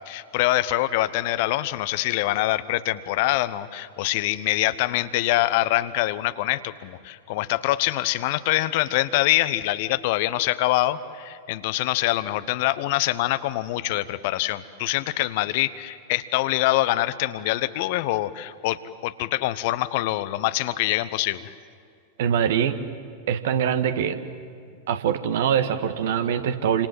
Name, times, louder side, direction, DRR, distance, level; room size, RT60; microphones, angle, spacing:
voice 1, 0.1-21.5, left 16 dB, 50° left, 14 dB, 1.0 m, -24 dB
voice 2, 22.2-22.8 23.3-24.2 24.9-26.9, right 8 dB, 55° right, 9 dB, 1.8 m, -23 dB
28.5 x 26.5 x 7.9 m, 2.3 s
figure-of-eight pair, 90°, 0 cm